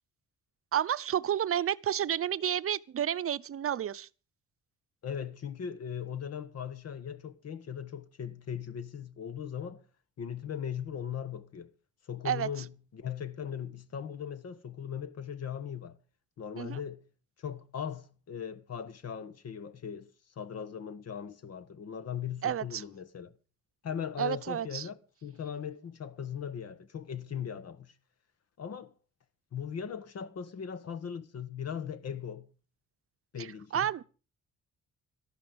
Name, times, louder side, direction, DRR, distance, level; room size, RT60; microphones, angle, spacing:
voice 1, 0.7-4.1 12.2-12.5 16.6-16.8 22.4-22.8 24.2-24.9 33.4-33.5 33.7-34.0, right 10 dB, 45° right, 0.7 m, -30 dB
voice 2, 5.0-9.8 10.2-11.7 12.1-16.0 16.4-17.0 17.4-23.3 23.8-27.9 28.6-28.9 29.5-32.5 33.3-33.9, left 8 dB, 55° left, 1.3 m, -39 dB
13.5 x 12.0 x 5.2 m
cardioid pair, 90°, 30 cm